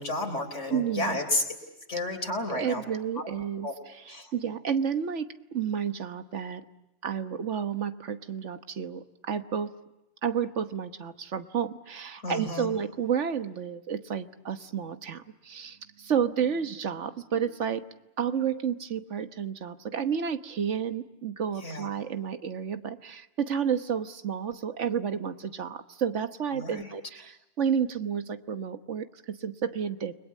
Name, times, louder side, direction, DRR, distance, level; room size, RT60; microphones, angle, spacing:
voice 1, 0.0-1.4 1.9-2.8 3.2-3.3 3.6-3.7 4.1-4.3 12.2-12.7 21.6-21.9 26.5-26.9, left 2 dB, 85° left, 4 dB, 4.2 m, -31 dB
voice 2, 0.7-1.2 2.5-6.6 7.0-9.7 10.2-17.9 18.2-30.1, right 7 dB, 80° right, 10 dB, 1.5 m, -31 dB
29.5 x 21.0 x 8.4 m, 0.99 s
omnidirectional pair, 1.2 m